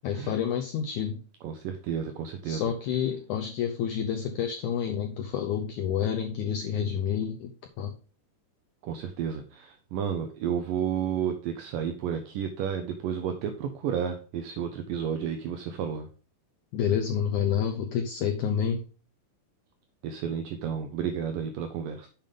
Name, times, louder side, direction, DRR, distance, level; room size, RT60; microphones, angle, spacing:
voice 1, 0.0-1.2 2.4-7.9 16.7-18.8, left 8 dB, 85° left, 4 dB, 1.7 m, -29 dB
voice 2, 1.4-2.7 8.8-16.1 20.0-22.1, right 8 dB, 75° right, 7 dB, 2.2 m, -31 dB
7.5 x 5.4 x 5.1 m, 0.38 s
omnidirectional pair, 4.4 m